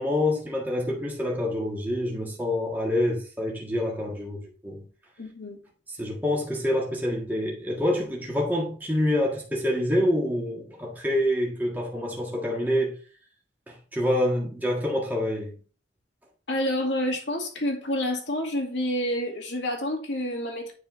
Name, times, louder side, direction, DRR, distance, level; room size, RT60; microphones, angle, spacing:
voice 1, 0.0-4.8 5.9-12.9 13.7-15.6, left 1 dB, 10° right, 1.7 m, -27 dB
voice 2, 5.2-5.6 16.5-20.7, left 1 dB, 80° left, 2.0 m, -28 dB
10.0 x 4.5 x 3.2 m
head